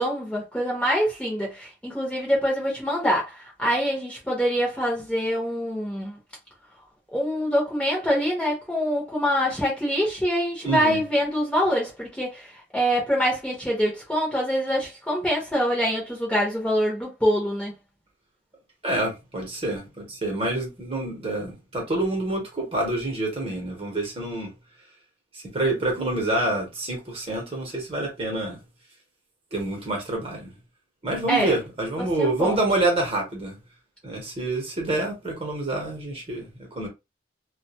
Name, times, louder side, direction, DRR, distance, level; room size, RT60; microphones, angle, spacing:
voice 1, 0.0-6.2 7.1-17.7 31.3-31.6 32.0-32.6, equal, 5° left, 0.8 m, -25 dB
voice 2, 10.6-11.0 18.8-24.5 25.3-28.6 29.5-30.5 31.0-33.6 34.0-36.5 36.8-36.9, right 2 dB, 30° right, 0.9 m, -27 dB
2.3 x 2.2 x 2.8 m
head